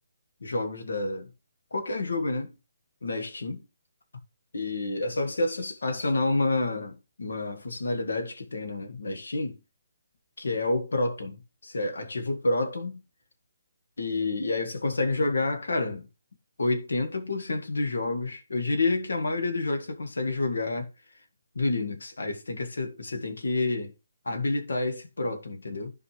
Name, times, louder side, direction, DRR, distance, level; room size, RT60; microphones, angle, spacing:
voice 1, 0.4-1.3 1.7-2.5 3.0-3.6 4.5-9.6 10.4-13.0 14.0-16.1 16.6-20.9 21.6-23.9 24.3-25.9, left 2 dB, 80° left, 1.9 m, -29 dB
11.5 x 5.0 x 3.3 m
hypercardioid pair, 150°, 0 cm